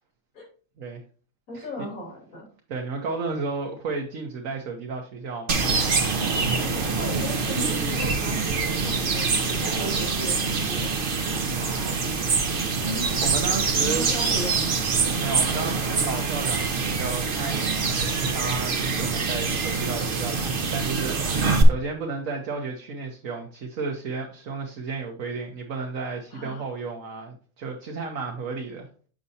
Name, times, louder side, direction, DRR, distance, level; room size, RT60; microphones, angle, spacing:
voice 1, 1.5-2.5 6.8-10.9 13.8-14.8 26.3-26.6, equal, 85° left, -4 dB, 3.2 m, -36 dB
voice 2, 2.7-5.6 11.5-12.2 13.2-14.1 15.2-28.9, right 4 dB, 70° right, 2 dB, 1.4 m, -33 dB
sound 1, 5.5-21.6, right 4 dB, 45° right, 1.1 m, -25 dB
7.5 x 6.5 x 2.8 m, 0.40 s
omnidirectional pair, 1.5 m